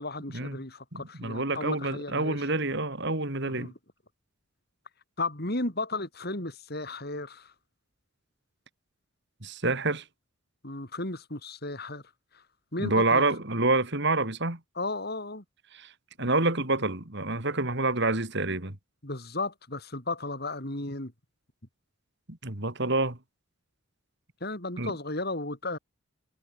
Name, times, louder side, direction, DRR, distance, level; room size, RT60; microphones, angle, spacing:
voice 1, 0.0-2.5 3.4-3.7 5.2-7.5 10.6-12.0 12.3-12.4 12.7-13.2 14.8-15.4 19.0-21.1 24.4-25.8, left 2 dB, 45° left, 4.4 m, -34 dB
voice 2, 0.9-3.7 9.4-10.0 12.8-14.6 15.7-15.9 16.2-18.8 22.3-23.2 24.8-24.9, right 2 dB, 55° right, 3.1 m, -27 dB
head